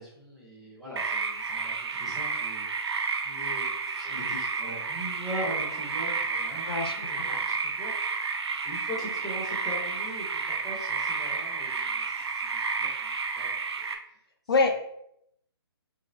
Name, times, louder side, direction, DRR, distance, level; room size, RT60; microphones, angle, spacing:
voice 1, 0.0-7.9 8.6-13.5 13.8-13.9, equal, ahead, -9 dB, 0.6 m, -41 dB
sound 1, 1.0-14.0, right 4 dB, 90° right, 0.5 m, -31 dB
voice 2, 6.6-7.2 14.5-14.7, left 3 dB, 65° left, 4 dB, 0.6 m, -25 dB
3.3 x 2.7 x 3.2 m, 0.75 s
hypercardioid pair, 160°, 13 cm